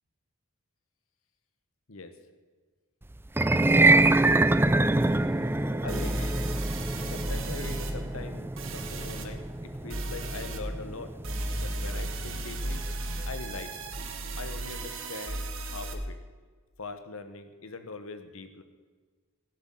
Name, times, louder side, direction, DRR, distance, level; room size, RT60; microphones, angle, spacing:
sound 1, 3.3-13.6, right 2 dB, 10° right, 0.3 m, -26 dB
sound 2, 5.2-5.3 5.9-7.9 8.6-9.3 9.9-10.6 11.2-15.9, right 1 dB, 60° right, 1.7 m, -34 dB
voice 1, 5.8-6.3 7.0-11.1 11.6-12.8 13.3-13.8 14.4-16.2 16.8-18.6, left 3 dB, 70° left, 9 dB, 1.2 m, -41 dB
16.5 x 8.0 x 7.7 m, 1.5 s
head